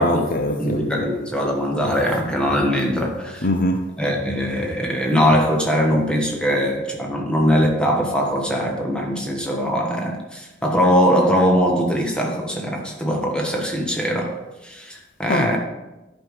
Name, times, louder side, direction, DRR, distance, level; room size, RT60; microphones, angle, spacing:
voice 1, 0.0-1.1 3.4-3.9 15.3-15.6, left 1 dB, 50° left, 0.7 m, -22 dB
voice 2, 0.6-3.5 4.0-15.6, equal, 5° left, 1.4 m, -21 dB
10.5 x 5.6 x 4.8 m
head